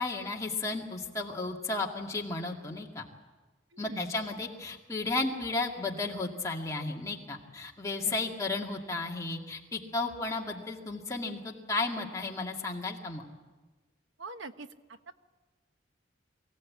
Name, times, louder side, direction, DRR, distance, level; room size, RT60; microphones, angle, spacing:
voice 1, 0.0-3.1 3.8-13.2, left 3 dB, 15° left, -1 dB, 2.1 m, -34 dB
voice 2, 3.7-4.2 8.0-8.1 14.2-14.7 15.1-15.2, right 3 dB, 80° right, 9 dB, 1.0 m, -43 dB
24.0 x 16.0 x 8.6 m, 1.3 s
head